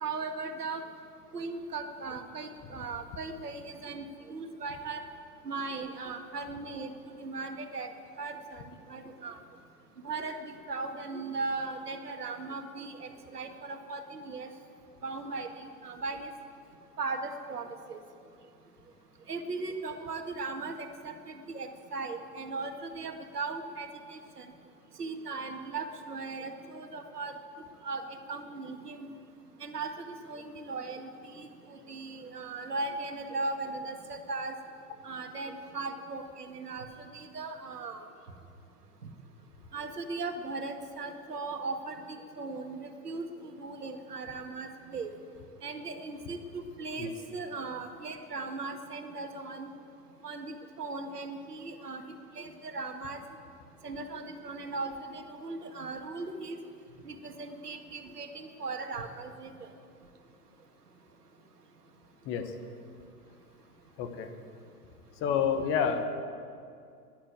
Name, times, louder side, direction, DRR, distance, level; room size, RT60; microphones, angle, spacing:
voice 1, 0.0-0.8 1.3-5.0 5.4-6.9 7.2-7.9 8.2-8.6 8.9-9.4 10.0-14.5 15.0-16.3 17.0-18.0 19.3-24.5 25.0-27.3 27.8-29.1 29.6-34.5 35.0-36.9 37.1-38.1 39.7-45.1 45.6-49.7 50.2-53.2 53.8-56.6 57.0-59.7, right 3 dB, 75° right, 6 dB, 1.8 m, -38 dB
voice 2, 64.0-64.3 65.2-66.1, left 7 dB, 25° left, 7 dB, 1.1 m, -28 dB
12.5 x 11.0 x 9.1 m, 2.4 s
figure-of-eight pair, 110°, 47 cm